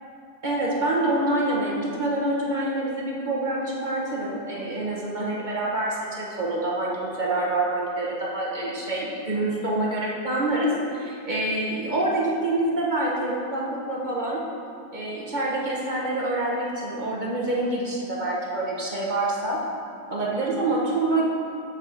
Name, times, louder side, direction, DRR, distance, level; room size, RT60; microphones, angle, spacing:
voice 1, 0.4-14.4 14.9-19.6 20.1-21.2, right 2 dB, 35° right, -4 dB, 1.2 m, -26 dB
7.9 x 6.3 x 5.1 m, 2.4 s
omnidirectional pair, 1.5 m